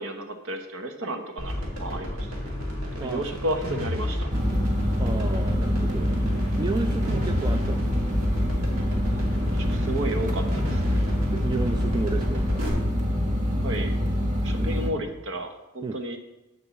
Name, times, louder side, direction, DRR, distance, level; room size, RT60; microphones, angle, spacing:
voice 1, 0.0-2.1 3.0-4.3 9.5-10.9 13.6-14.0 14.4-16.2, right 1 dB, 65° right, 6 dB, 1.0 m, -32 dB
sound 1, 1.4-12.7, left 1 dB, 80° right, 2.3 m, -31 dB
sound 2, 4.3-14.9, equal, 35° right, 1.1 m, -25 dB
voice 2, 5.0-6.1 6.6-8.1 11.3-12.6 14.6-14.7 15.8-16.0, right 3 dB, 20° right, 7 dB, 0.3 m, -32 dB
6.9 x 5.4 x 7.2 m, 0.96 s
head